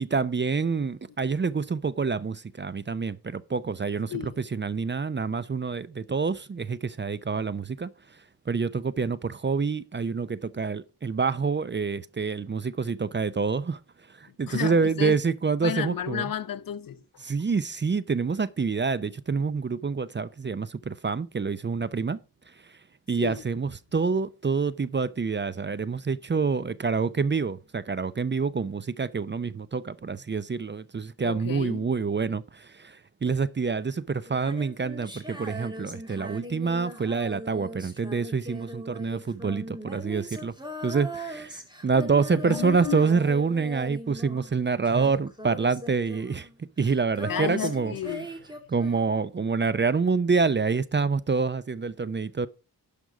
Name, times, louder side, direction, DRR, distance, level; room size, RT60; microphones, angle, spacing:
voice 1, 0.0-4.1 4.5-7.9 8.5-13.8 14.2-16.3 17.2-22.2 23.1-40.5 40.8-46.5 46.8-47.9 48.7-52.5, right 5 dB, 30° right, 0.6 m, -27 dB
voice 2, 14.3-15.2 15.6-17.0 23.2-23.4 31.2-31.9 42.3-43.0 47.3-48.3, left 8 dB, 55° left, 0.7 m, -32 dB
Female singing, 34.2-44.6 44.8-49.3, equal, 10° right, 2.5 m, -40 dB
11.5 x 5.3 x 4.7 m
cardioid pair, 65°, 40 cm